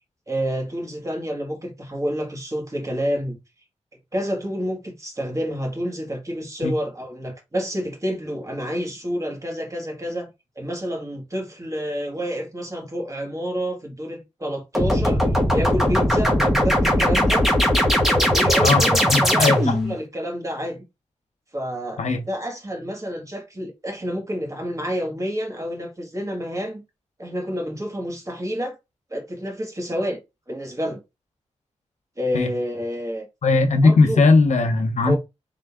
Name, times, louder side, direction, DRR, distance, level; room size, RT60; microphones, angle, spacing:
voice 1, 0.3-3.4 4.1-10.3 10.6-17.5 18.1-20.8 21.5-22.0 22.3-26.8 27.2-28.8 29.1-30.2 30.5-31.0 32.2-33.3 33.8-34.2 35.1-35.2, equal, 25° right, 2.0 m, -29 dB
sound 1, 14.8-20.0, equal, ahead, 1.7 m, -19 dB
voice 2, 19.1-19.8 22.0-22.2 32.3-32.5 33.4-35.2, left 3 dB, 80° left, 0.8 m, -18 dB
3.9 x 3.4 x 3.5 m
wide cardioid pair, 80°, 12 cm